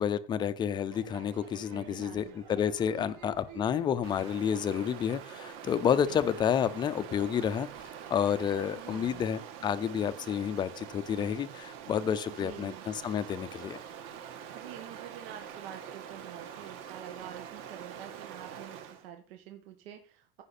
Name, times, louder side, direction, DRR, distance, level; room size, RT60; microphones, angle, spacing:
voice 1, 0.0-7.7 8.1-13.8, left 8 dB, 15° left, 0.4 m, -30 dB
Crowd / Fireworks, 0.9-9.2, right 6 dB, 65° right, 3.4 m, -53 dB
voice 2, 1.7-2.4 2.9-3.2 5.8-6.3 8.7-9.2 12.3-12.9 14.5-20.4, right 11 dB, 80° right, 1.5 m, -47 dB
Stream, 4.0-19.1, right 8 dB, 45° right, 1.6 m, -45 dB
15.0 x 5.7 x 4.2 m
supercardioid pair, 170°, 29 cm